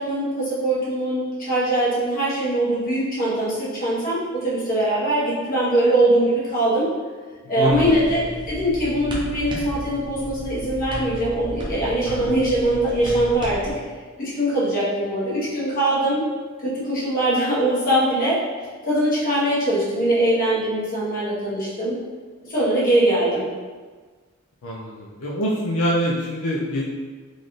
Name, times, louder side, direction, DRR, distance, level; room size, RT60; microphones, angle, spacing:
voice 1, 0.0-6.9 7.5-13.7 14.2-16.2 16.6-18.4 18.8-22.0 22.4-23.5, right 1 dB, 40° left, -8 dB, 1.3 m, -22 dB
voice 2, 7.6-8.0 12.1-12.3 24.6-26.8, equal, 75° left, -4 dB, 0.5 m, -24 dB
sound 1, 7.7-13.7, equal, 20° right, 0.6 m, -33 dB
3.9 x 2.5 x 3.1 m, 1.4 s
head